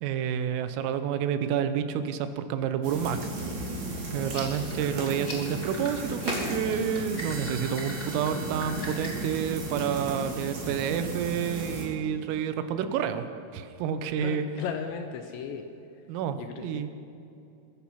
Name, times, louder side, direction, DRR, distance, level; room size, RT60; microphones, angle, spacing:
voice 1, 0.0-3.2 4.1-13.3 13.5-14.5 16.1-16.9, right 8 dB, 85° right, 10 dB, 3.5 m, -29 dB
sound 1, 2.8-11.8, right 1 dB, 50° right, 4.3 m, -35 dB
sound 2, 4.2-9.3, left 2 dB, 20° left, 3.9 m, -41 dB
sound 3, 7.2-11.5, right 4 dB, 70° right, 4.3 m, -49 dB
voice 2, 14.2-15.7 16.4-16.9, left 7 dB, 80° left, 6 dB, 2.7 m, -36 dB
23.0 x 10.0 x 5.7 m, 2.8 s
omnidirectional pair, 5.8 m